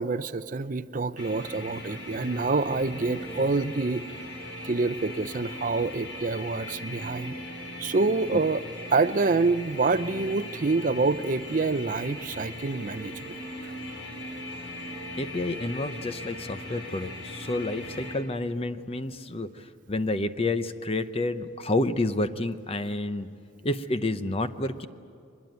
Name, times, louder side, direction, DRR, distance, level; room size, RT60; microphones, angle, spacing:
voice 1, 0.0-4.1 4.6-7.3 7.8-8.6 8.9-13.4, right 3 dB, 40° right, 14 dB, 0.5 m, -27 dB
sound 1, 1.2-18.2, left 1 dB, 80° left, 4.7 m, -39 dB
voice 2, 15.2-23.3 23.6-24.9, left 2 dB, 30° left, 11 dB, 0.8 m, -29 dB
23.5 x 21.5 x 9.1 m, 2.4 s
head